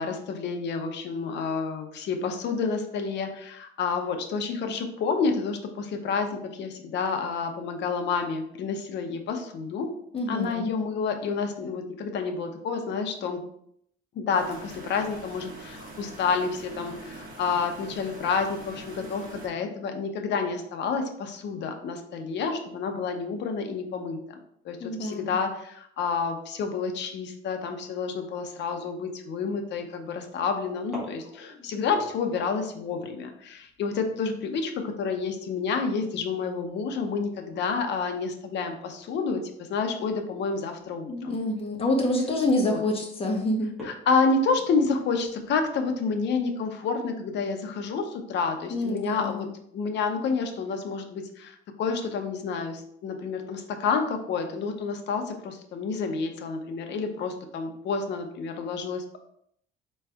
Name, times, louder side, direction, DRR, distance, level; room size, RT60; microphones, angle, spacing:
voice 1, 0.0-9.9 10.3-13.4 14.1-24.2 24.6-41.4 42.7-42.8 43.8-49.5 49.7-59.2, left 5 dB, 60° left, 5 dB, 0.8 m, -29 dB
voice 2, 10.1-10.7 24.8-25.4 41.1-43.7 48.7-49.5, left 1 dB, 30° left, 0 dB, 1.1 m, -27 dB
sound 1, 14.3-19.5, right 2 dB, 45° right, 1.3 m, -43 dB
sound 2, 29.3-29.6 30.8-37.2 37.5-37.6 38.0-38.3 39.3-39.5 40.1-40.2 40.8-40.9 41.2-41.6 42.2-42.5 42.9-43.0 43.6-46.0, left 1 dB, ahead, 1.8 m, -48 dB
4.3 x 3.2 x 3.5 m, 0.69 s
cardioid pair, 135°, 20 cm